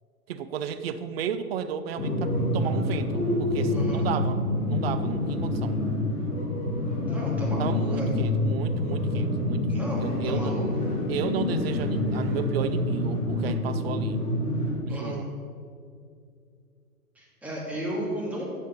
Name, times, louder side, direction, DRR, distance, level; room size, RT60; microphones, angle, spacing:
voice 1, 0.3-4.4 4.7-5.8 7.6-10.6 11.1-14.2 14.8-15.3, right 8 dB, 45° right, 11 dB, 0.5 m, -34 dB
sound 1, 2.0-14.7, left 1 dB, 15° left, 2.5 m, -27 dB
voice 2, 3.7-4.1 7.1-8.2 9.6-10.7 14.9-15.2 17.2-18.4, right 1 dB, 5° right, -6 dB, 1.8 m, -34 dB
8.5 x 6.4 x 5.3 m, 2.4 s
hypercardioid pair, 135°, 46 cm